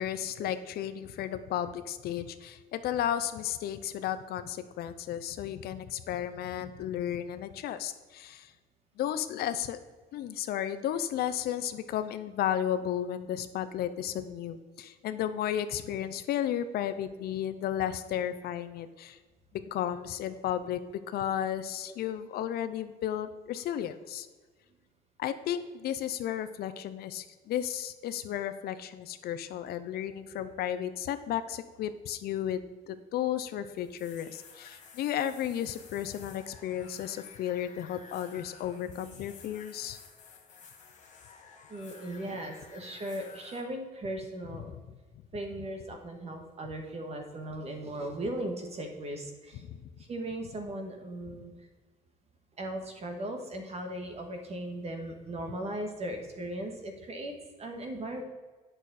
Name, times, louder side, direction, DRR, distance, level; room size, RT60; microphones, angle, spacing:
voice 1, 0.0-8.5 9.0-9.8 10.1-19.2 19.5-20.8 21.1-24.3 25.2-40.0 49.6-49.8, left 10 dB, 70° left, 11 dB, 0.6 m, -33 dB
sound 1, 33.7-43.6, left 5 dB, 45° left, 1.6 m, -53 dB
voice 2, 41.7-44.7 45.3-49.6 50.0-51.5 52.6-58.2, right 1 dB, 40° right, 4 dB, 1.6 m, -38 dB
8.9 x 6.4 x 4.1 m, 1.4 s
cardioid pair, 110°, 17 cm